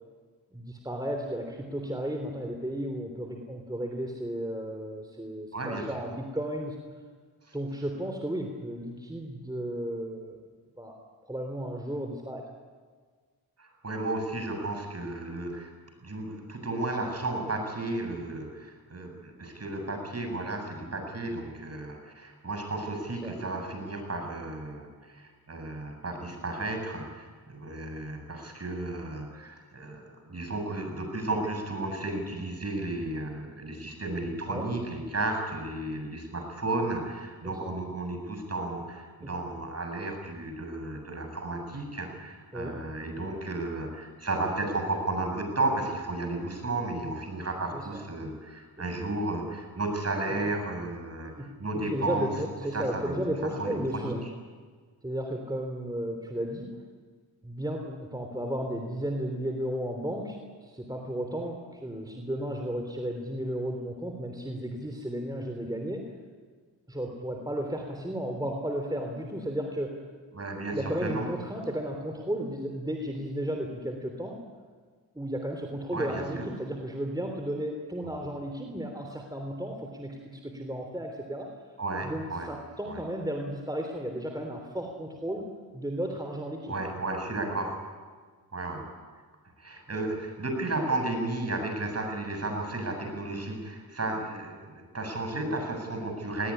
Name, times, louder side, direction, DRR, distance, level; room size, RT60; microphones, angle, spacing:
voice 1, 0.5-6.8 7.5-10.4 10.8-11.0 11.2-12.5 23.2-23.4 34.5-34.7 37.4-37.7 39.2-39.4 42.5-42.8 47.7-48.0 51.2-54.3 55.0-56.8 57.4-66.1 66.9-70.0 70.7-74.4 75.2-81.5 82.0-85.5 85.7-86.8, equal, 10° right, 3 dB, 3.4 m, -34 dB
voice 2, 5.5-6.0 7.5-7.6 13.6-15.7 16.0-51.3 51.6-52.3 52.7-53.1 53.6-54.1 70.3-71.3 75.9-76.4 78.0-78.1 81.8-82.5 82.9-83.0 86.7-87.8 88.5-88.8 89.6-96.5, right 2 dB, 40° right, 3 dB, 7.8 m, -33 dB
20.5 x 18.0 x 10.0 m, 1.5 s
cardioid pair, 65°, 39 cm